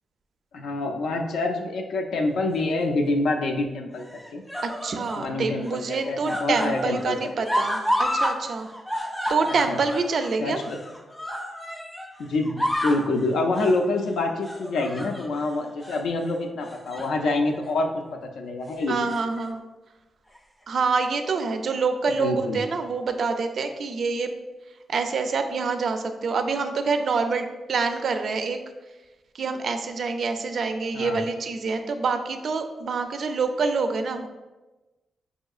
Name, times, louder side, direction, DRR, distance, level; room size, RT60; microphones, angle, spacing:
voice 1, 0.5-4.4 5.2-7.5 9.7-9.8 10.4-10.8 12.2-18.0 18.4-19.1 22.1-22.6 30.9-31.2, left 2 dB, 80° left, 2 dB, 0.4 m, -26 dB
sound 1, 2.5-3.1 4.0-5.3 5.6-8.4 8.6-12.1 12.4-13.1 13.5-13.8 14.4-15.4 15.8-16.0 16.7-17.2 17.5-17.7 18.8-19.5 20.4-20.5, equal, ahead, 0.5 m, -30 dB
voice 2, 4.6-8.7 9.3-10.6 18.9-19.6 20.7-24.3 24.9-28.6 29.3-34.3, right 4 dB, 55° right, 7 dB, 0.3 m, -26 dB
5.5 x 2.7 x 2.3 m, 1.1 s
cardioid pair, 115°, 0 cm